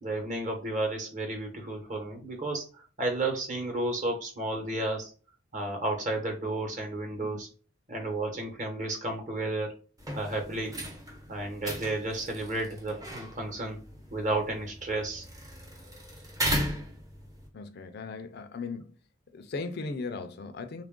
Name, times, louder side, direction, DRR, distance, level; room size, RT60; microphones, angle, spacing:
voice 1, 0.0-5.1 5.5-7.5 7.9-9.7 10.1-10.8 11.3-13.8 14.1-15.2, right 2 dB, 40° right, 1.0 m, -32 dB
sound 1, 10.0-17.5, equal, 20° right, 0.7 m, -37 dB
voice 2, 17.5-18.9 19.3-20.8, left 4 dB, 50° left, 0.4 m, -37 dB
3.2 x 2.4 x 3.6 m
head